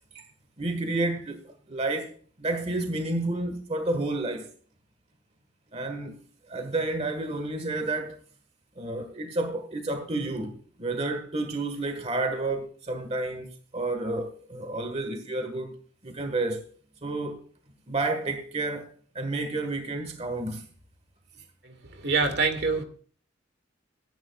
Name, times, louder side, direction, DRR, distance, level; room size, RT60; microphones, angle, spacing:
voice 1, 0.6-4.5 5.7-6.2 6.5-8.2 8.8-15.8 16.0-16.7 17.0-17.4 17.9-20.6, right 2 dB, 35° right, 1.5 m, -30 dB
voice 2, 21.6-22.8, right 4 dB, 60° right, 2.1 m, -26 dB
24.0 x 11.0 x 2.4 m
head